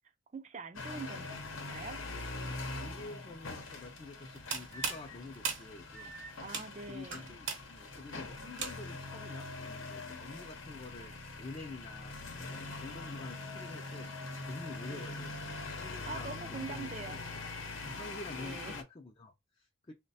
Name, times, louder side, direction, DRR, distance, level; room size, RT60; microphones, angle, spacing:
voice 1, 0.3-2.0 6.4-7.4 14.9-15.1 15.8-17.2 18.4-18.8, right 4 dB, 35° right, 0.4 m, -44 dB
sound 1, 0.7-18.8, left 3 dB, 80° left, 0.8 m, -43 dB
voice 2, 2.8-6.1 6.9-17.4 17.8-19.9, left 3 dB, 25° left, 0.4 m, -48 dB
sound 2, 4.2-9.1, right 5 dB, 65° right, 0.9 m, -40 dB
3.2 x 2.2 x 4.0 m
head